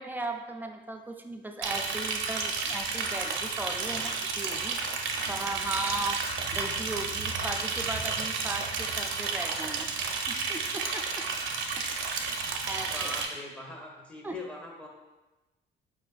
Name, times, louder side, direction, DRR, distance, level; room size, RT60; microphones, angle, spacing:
voice 1, 0.0-11.3 11.8-11.9 12.7-13.1 14.2-14.4, right 2 dB, 10° right, 4 dB, 0.3 m, -37 dB
Liquid, 1.6-13.2, right 4 dB, 80° right, 0.5 m, -32 dB
voice 2, 3.8-4.2 12.9-14.9, left 2 dB, 5° left, -1 dB, 0.8 m, -41 dB
5.1 x 2.4 x 2.3 m, 1.1 s
cardioid pair, 90°, 20 cm